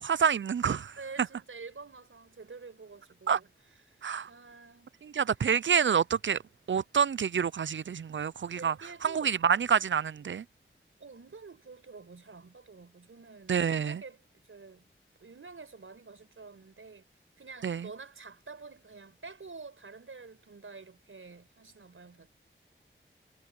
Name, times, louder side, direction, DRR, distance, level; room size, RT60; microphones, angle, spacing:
voice 1, 0.0-1.0 3.3-3.4 4.0-4.3 5.0-6.4 6.7-8.7 9.0-10.4 13.5-14.0 17.6-17.9, right 7 dB, 70° right, 0.5 m, -27 dB
voice 2, 1.0-3.5 3.9-4.0 4.2-5.0 8.5-9.3 11.0-14.2 14.5-14.8 15.2-17.0 17.4-22.3, right 4 dB, 90° right, 5.0 m, -48 dB
wide cardioid pair, 80°, 21 cm